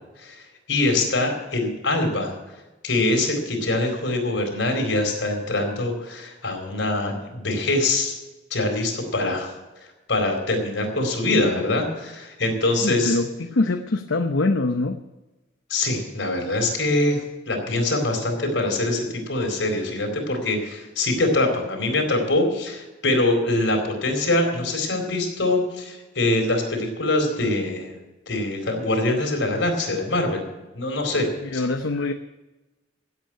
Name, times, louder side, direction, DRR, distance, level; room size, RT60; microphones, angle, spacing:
voice 1, 0.2-2.3 2.8-8.1 8.5-9.5 10.1-13.2 15.7-27.9 28.3-30.5 30.7-31.6, left 2 dB, 70° left, 4.3 m, -24 dB
voice 2, 12.8-15.0 31.5-32.1, left 2 dB, 90° left, 0.8 m, -23 dB
15.5 x 8.3 x 7.6 m
head